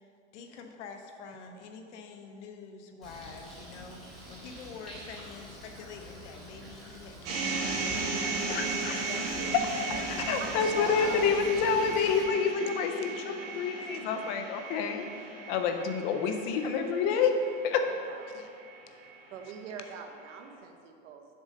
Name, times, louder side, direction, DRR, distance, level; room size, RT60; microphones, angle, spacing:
voice 1, 0.3-10.1 10.9-11.5, left 5 dB, 75° left, 4 dB, 1.0 m, -45 dB
Bird, 3.0-12.2, equal, ahead, 1.7 m, -47 dB
sound 1, 7.3-19.4, right 4 dB, 40° right, 1.3 m, -36 dB
voice 2, 8.5-9.0 9.5-9.9 10.3-15.1 15.5-17.3 17.6-17.8, left 6 dB, 30° left, 6 dB, 0.4 m, -28 dB
voice 3, 10.4-11.4 18.1-18.4 19.3-21.3, right 6 dB, 90° right, 4 dB, 1.0 m, -42 dB
7.2 x 3.8 x 6.3 m, 2.4 s
supercardioid pair, 155°, 36 cm